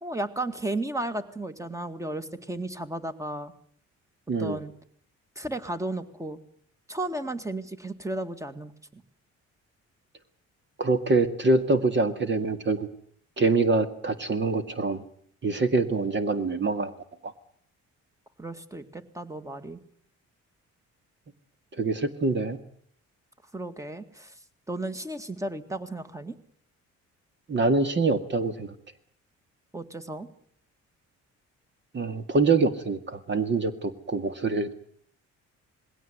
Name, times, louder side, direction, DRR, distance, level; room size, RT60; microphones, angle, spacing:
voice 1, 0.0-3.5 4.4-4.7 5.4-6.4 6.9-9.0 18.4-19.8 23.5-24.3 24.7-26.4 29.7-30.3, right 1 dB, 10° right, 9 dB, 2.0 m, -34 dB
voice 2, 4.3-4.6 10.8-12.8 13.4-15.0 15.4-16.9 17.2-17.3 21.8-22.6 27.5-28.7 31.9-34.7, right 3 dB, 40° right, 9 dB, 2.1 m, -25 dB
20.5 x 17.0 x 9.6 m, 0.62 s
cardioid pair, 90°, 30 cm